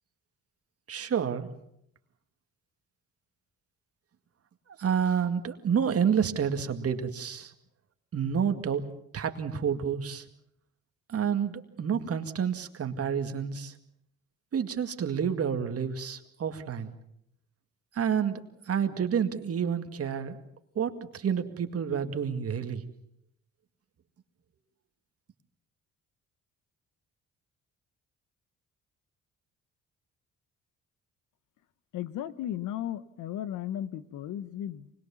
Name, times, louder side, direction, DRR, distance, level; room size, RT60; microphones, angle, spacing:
voice 1, 0.9-1.5 4.8-7.5 8.1-8.8 9.1-10.2 11.1-13.7 14.5-16.9 17.9-18.4 18.7-20.4 20.8-22.8, right 7 dB, 50° right, 7 dB, 2.1 m, -29 dB
voice 2, 31.9-34.9, left 11 dB, 85° left, 16 dB, 1.0 m, -35 dB
25.0 x 21.0 x 7.1 m, 0.76 s
cardioid pair, 90°, 30 cm